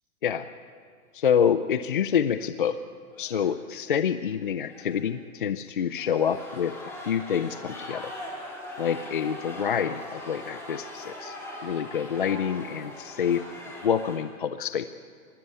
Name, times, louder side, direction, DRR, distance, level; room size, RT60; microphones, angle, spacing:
voice 1, 1.1-2.8 3.2-6.7 7.0-8.1 8.8-11.4 11.6-13.4 13.8-14.9, left 8 dB, 40° left, 11 dB, 0.5 m, -27 dB
sound 1, 1.9-2.2 2.4-2.5 3.1-3.6 4.7-5.2 5.8-14.2, left 1 dB, 5° left, 2.1 m, -41 dB
21.0 x 15.5 x 9.6 m, 2.1 s
hypercardioid pair, 170°, 43 cm